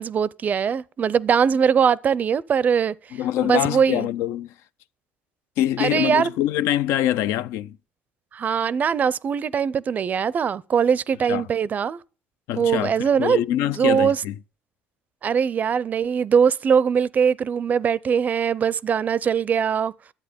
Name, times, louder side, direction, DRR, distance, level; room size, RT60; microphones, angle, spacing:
voice 1, 0.0-4.1 5.8-6.3 8.3-12.0 12.6-14.2 15.2-19.9, right 7 dB, 35° right, 0.4 m, -21 dB
voice 2, 3.1-4.5 5.6-7.8 11.3-11.5 12.5-14.3, left 12 dB, 75° left, 0.4 m, -24 dB
10.5 x 8.4 x 5.1 m
cardioid pair, 105°, 4 cm